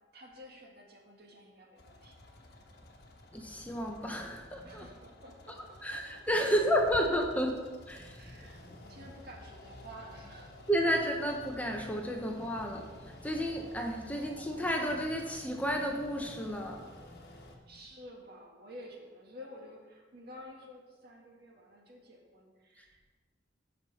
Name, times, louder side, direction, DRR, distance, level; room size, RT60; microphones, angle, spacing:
voice 1, 0.1-2.2 4.6-6.0 6.3-6.5 8.2-10.6 17.7-23.0, equal, 60° right, -1 dB, 2.0 m, -51 dB
sound 1, 1.8-17.6, left 1 dB, 60° left, 1.3 m, -53 dB
voice 2, 3.3-4.9 5.8-7.6 7.9-8.3 8.7-8.8 10.7-16.9 22.8-23.0, equal, 10° left, 2 dB, 0.9 m, -32 dB
15.5 x 5.8 x 4.3 m, 1.4 s
head